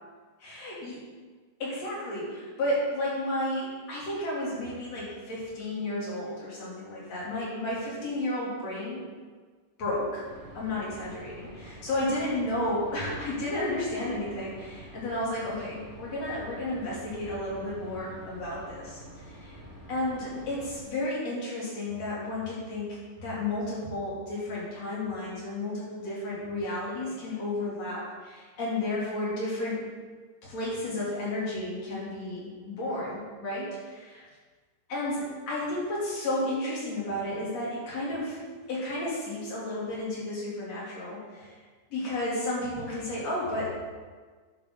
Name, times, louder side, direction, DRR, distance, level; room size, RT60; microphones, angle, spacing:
voice 1, 0.4-1.0 1.6-9.0 9.8-10.2 10.5-19.0 19.3-19.6 19.9-29.8 30.4-34.3 34.9-38.4 38.7-41.6 41.9-43.7, left 1 dB, 50° left, -7 dB, 4.5 m, -32 dB
sound 1, 10.2-20.8, equal, 25° right, 2.4 m, -47 dB
12.0 x 9.8 x 4.1 m, 1.5 s
omnidirectional pair, 3.8 m